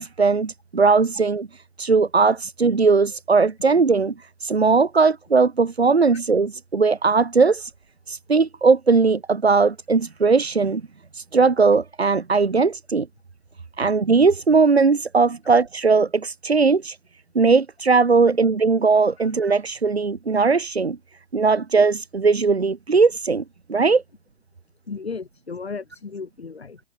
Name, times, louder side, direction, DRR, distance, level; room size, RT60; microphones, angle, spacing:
voice 1, 0.0-1.5 1.8-4.1 4.4-7.7 8.1-10.8 11.1-13.1 13.8-17.0 17.3-21.0 21.3-23.4 23.7-24.0, right 4 dB, 85° right, 2.7 m, -19 dB
voice 2, 24.9-26.8, left 4 dB, 80° left, 6.8 m, -35 dB
figure-of-eight pair, 120°, 31 cm